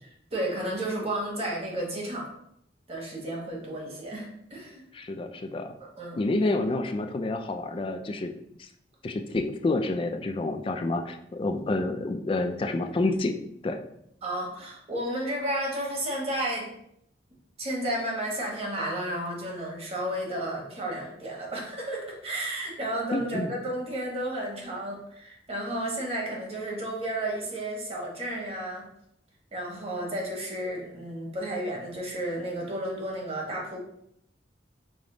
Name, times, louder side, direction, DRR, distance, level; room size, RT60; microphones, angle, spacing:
voice 1, 0.3-2.3 2.9-4.8 6.0-6.2 14.2-16.7 17.6-28.9 29.5-33.8, right 1 dB, 35° right, -2 dB, 1.1 m, -32 dB
voice 2, 4.9-5.7 6.2-8.3 8.6-8.7 9.0-13.3 13.6-13.8 23.1-23.5, left 2 dB, 30° left, 6 dB, 0.3 m, -28 dB
5.0 x 2.0 x 3.8 m, 0.74 s
head